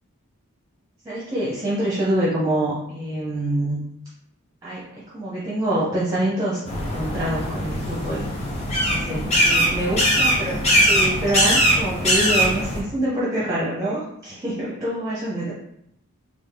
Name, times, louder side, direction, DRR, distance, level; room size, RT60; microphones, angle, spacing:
voice 1, 1.0-3.9 4.6-8.2 8.9-10.6 10.9-15.5, right 1 dB, 15° right, -7 dB, 0.7 m, -26 dB
sound 1, 6.6-12.8, equal, 30° left, 0.8 m, -21 dB
3.5 x 2.5 x 3.6 m, 0.75 s
head